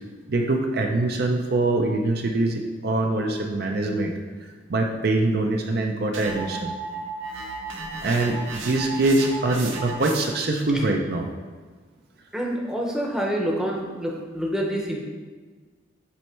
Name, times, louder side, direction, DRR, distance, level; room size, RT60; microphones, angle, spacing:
voice 1, 0.3-4.1 4.7-6.7 8.0-11.3, right 2 dB, 50° right, 2 dB, 0.5 m, -23 dB
sound 1, 6.1-10.5, right 4 dB, 80° right, 0.8 m, -34 dB
voice 2, 12.3-15.0, equal, 5° right, -1 dB, 0.7 m, -27 dB
8.3 x 3.2 x 4.4 m, 1.4 s
head